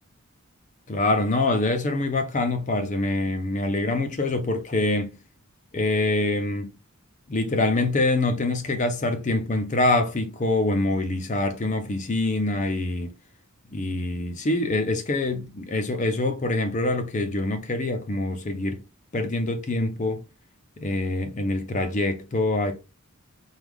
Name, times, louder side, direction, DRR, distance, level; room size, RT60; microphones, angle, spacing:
voice 1, 0.9-5.1 5.7-6.7 7.3-13.1 13.7-18.8 19.1-20.2 20.8-22.7, left 2 dB, 35° left, 0.5 m, -25 dB
4.8 x 2.3 x 3.5 m
head